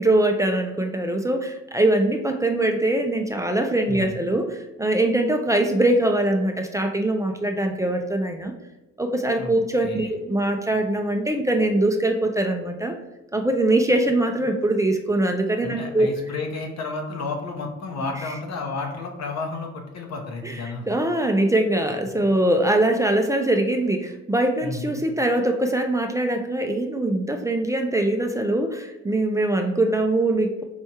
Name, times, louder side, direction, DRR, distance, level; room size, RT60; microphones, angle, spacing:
voice 1, 0.0-8.5 9.0-12.9 13.3-16.1 20.4-20.5 20.9-30.6, right 1 dB, 10° right, 4 dB, 0.3 m, -22 dB
voice 2, 9.8-10.1 15.6-20.9 22.2-22.3 24.6-24.9, left 3 dB, 60° left, 2 dB, 0.9 m, -32 dB
4.5 x 3.4 x 2.8 m, 1.0 s
cardioid pair, 90°, 30 cm